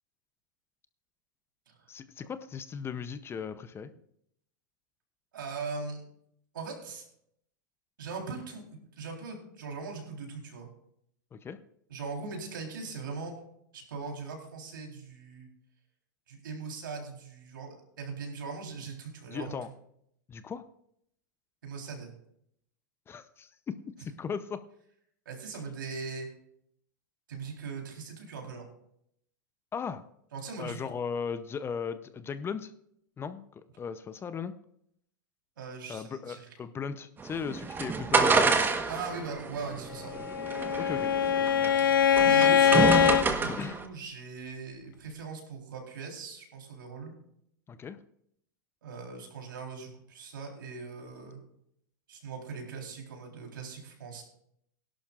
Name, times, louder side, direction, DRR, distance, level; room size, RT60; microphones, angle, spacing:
voice 1, 1.9-3.9 11.3-11.6 19.3-19.7 20.3-20.6 23.1-24.6 29.7-30.0 30.6-32.7 33.2-34.5 35.9-38.6 40.8-41.1 41.6-41.9 43.5-43.7 47.7-48.0, left 6 dB, 20° left, 12 dB, 0.7 m, -37 dB
voice 2, 5.3-6.0 6.5-7.0 8.0-10.7 11.9-13.4 13.7-15.5 16.3-19.6 21.6-22.1 25.3-26.3 27.3-28.7 30.3-30.9 35.6-36.5 38.9-40.3 42.2-47.1 48.8-51.4 52.1-54.2, right 4 dB, 80° right, 1 dB, 3.9 m, -40 dB
sound 1, 37.2-43.8, right 4 dB, 20° right, 1.2 m, -28 dB
Bowed string instrument, 40.1-43.3, left 8 dB, 90° left, 0.5 m, -23 dB
17.5 x 11.5 x 2.5 m, 0.72 s
hypercardioid pair, 105°, 11 cm